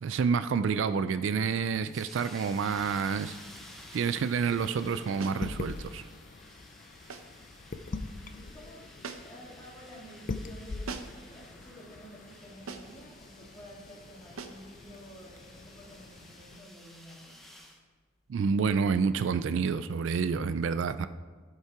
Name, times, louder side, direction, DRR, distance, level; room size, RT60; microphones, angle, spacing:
voice 1, 0.0-3.4 3.9-6.0 18.3-21.1, right 5 dB, 65° right, 13 dB, 0.3 m, -28 dB
sound 1, 1.9-17.8, left 1 dB, ahead, 0.8 m, -53 dB
sound 2, 2.4-16.6, left 3 dB, 35° left, 0.4 m, -44 dB
sound 3, 5.2-5.5 7.1-7.4 9.0-9.5 10.9-11.3 12.7-13.0 14.4-14.7, right 4 dB, 85° right, 0.7 m, -42 dB
voice 2, 7.9-8.9 9.2-17.4, equal, 15° left, -4 dB, 2.1 m, -51 dB
14.5 x 5.6 x 4.7 m, 1.4 s
head